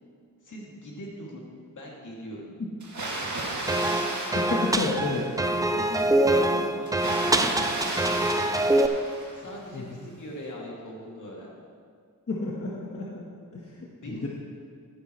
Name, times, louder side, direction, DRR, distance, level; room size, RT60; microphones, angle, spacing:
voice 1, 0.4-2.5 5.7-7.6 9.3-11.5 13.9-14.3, equal, 65° left, -3 dB, 2.5 m, -41 dB
Water, 2.8-5.6 6.9-9.7, right 2 dB, 60° right, 2.3 m, -34 dB
sound 1, 3.7-8.9, right 1 dB, 10° right, 0.5 m, -24 dB
voice 2, 4.3-5.3 9.7-10.0 12.3-13.2 13.5-14.3, left 2 dB, 45° left, -4 dB, 1.3 m, -31 dB
14.5 x 9.4 x 3.2 m, 2.3 s
cardioid pair, 80°, 33 cm